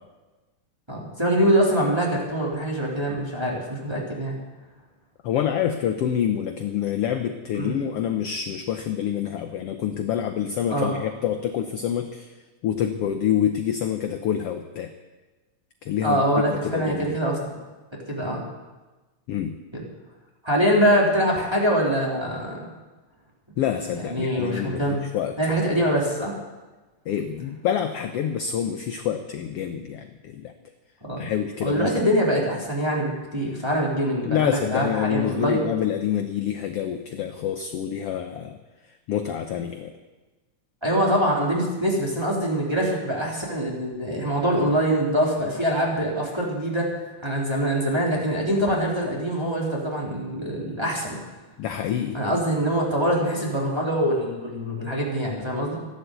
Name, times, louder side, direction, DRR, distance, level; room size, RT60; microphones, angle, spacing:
voice 1, 0.9-4.4 7.5-7.7 10.7-10.9 16.0-17.4 18.1-18.4 19.7-19.8 20.4-22.6 24.0-25.0 25.4-26.4 31.0-31.2 31.6-35.6 40.8-46.9 47.2-51.2 52.1-55.8, equal, 10° right, -4 dB, 3.3 m, -24 dB
voice 2, 5.2-12.3 12.6-14.9 15.8-16.2 16.5-17.2 19.3-19.6 23.6-25.7 27.1-30.5 31.2-32.1 34.2-38.6 39.1-39.9 51.6-52.2, left 9 dB, 70° left, 6 dB, 1.5 m, -27 dB
14.5 x 12.0 x 8.1 m, 1.2 s
omnidirectional pair, 3.6 m